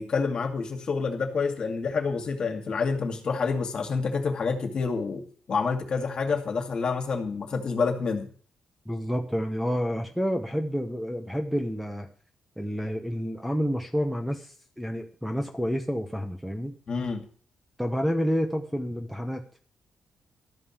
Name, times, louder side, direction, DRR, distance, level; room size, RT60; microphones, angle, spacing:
voice 1, 0.0-5.2 5.5-8.3 16.9-17.2, left 5 dB, 45° left, 4 dB, 2.3 m, -28 dB
voice 2, 8.9-12.1 12.6-16.7 17.8-19.4, equal, ahead, 5 dB, 1.1 m, -29 dB
13.0 x 5.4 x 9.0 m, 0.43 s
wide cardioid pair, 150°, 2 cm